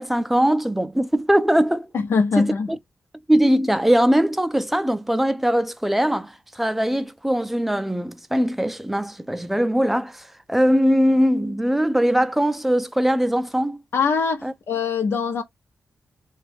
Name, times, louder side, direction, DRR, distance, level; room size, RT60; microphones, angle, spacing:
voice 1, 0.0-1.9 2.4-2.5 3.3-13.8 14.4-14.5, equal, 5° right, 0.4 m, -21 dB
voice 2, 1.9-2.7 13.9-15.4, left 5 dB, 80° left, 0.7 m, -22 dB
3.5 x 2.3 x 3.4 m
wide cardioid pair, 140°, 4 cm